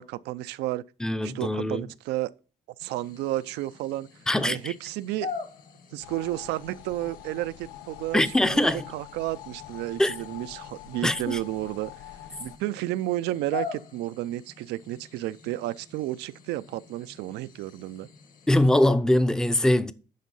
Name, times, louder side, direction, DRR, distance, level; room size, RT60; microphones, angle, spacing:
voice 1, 0.0-0.8 1.2-2.3 2.8-4.1 4.4-5.3 5.9-11.9 12.4-18.1, right 15 dB, 85° right, 0.5 m, -32 dB
voice 2, 1.0-1.8 4.3-4.7 8.1-8.9 10.0-10.1 11.0-11.4 18.5-19.9, left 1 dB, 5° left, 0.5 m, -22 dB
sound 1, 2.8-18.9, left 5 dB, 55° left, 1.5 m, -44 dB
sound 2, 6.0-12.6, left 14 dB, 90° left, 0.5 m, -45 dB
10.5 x 3.7 x 5.4 m
cardioid pair, 110°, 17 cm